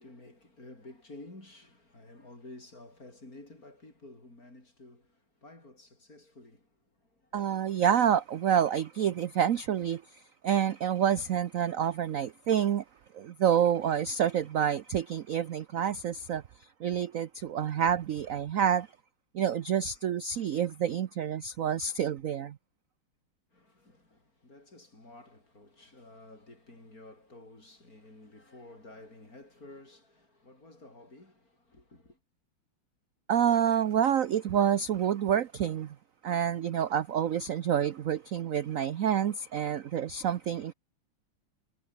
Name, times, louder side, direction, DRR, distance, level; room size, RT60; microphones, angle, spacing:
voice 1, 0.0-7.6 23.5-32.2, left 2 dB, 40° left, 7.2 m, -52 dB
voice 2, 7.3-12.8 13.1-16.4 16.8-18.9 19.3-22.6 33.3-36.0 36.2-40.7, right 9 dB, 70° right, 0.8 m, -28 dB
omnidirectional pair, 2.3 m